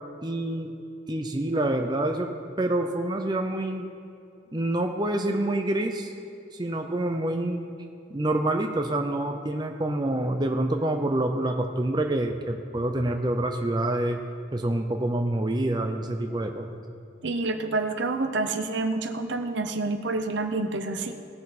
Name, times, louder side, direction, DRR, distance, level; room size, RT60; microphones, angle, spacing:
voice 1, 0.2-0.7 1.1-2.3 2.6-3.9 4.5-6.1 6.5-7.7 8.1-14.2 14.5-16.8, right 1 dB, 20° right, 4 dB, 0.6 m, -27 dB
voice 2, 17.2-21.1, right 3 dB, 70° right, 7 dB, 0.8 m, -28 dB
19.0 x 6.4 x 4.2 m, 2.5 s
head